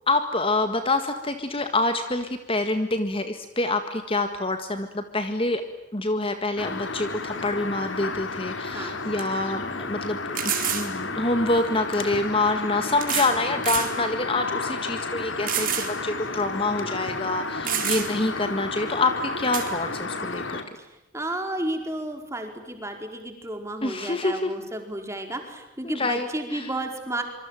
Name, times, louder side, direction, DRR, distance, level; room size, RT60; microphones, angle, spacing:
voice 1, 0.1-5.6 5.9-20.6 23.8-24.5 25.8-26.7, left 2 dB, 25° left, 8 dB, 1.8 m, -26 dB
sound 1, 6.6-20.6, left 3 dB, 75° left, 3.0 m, -32 dB
sound 2, 8.6-8.7 9.2-9.3 10.3-10.9 12.0-12.1 13.0-13.4 13.6-13.9 14.4-14.5 15.5-15.9 16.3-16.4 17.2-17.3 17.6-18.3 19.5-19.7, right 10 dB, 45° right, 4.3 m, -27 dB
voice 2, 8.7-9.0 17.6-18.2 20.7-27.2, right 1 dB, 15° right, 5 dB, 4.6 m, -33 dB
26.0 x 25.0 x 9.1 m, 0.97 s
head